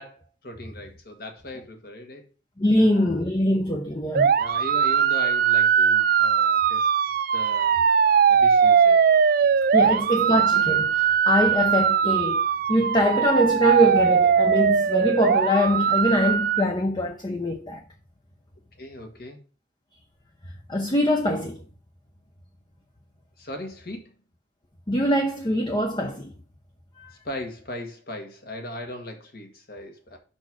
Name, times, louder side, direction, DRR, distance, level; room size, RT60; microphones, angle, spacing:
voice 1, 0.0-2.2 2.8-3.2 4.4-6.9 7.3-7.8 8.3-9.0 9.4-10.2 18.8-19.4 23.4-24.1 27.2-30.2, left 1 dB, 55° left, 1.6 m, -38 dB
voice 2, 2.6-4.3 9.7-17.8 20.7-21.6 24.9-26.3 27.0-27.1, equal, 25° left, 0.7 m, -23 dB
sound 1, 4.1-16.6, right 7 dB, 50° right, 0.3 m, -20 dB
5.9 x 4.4 x 6.0 m
head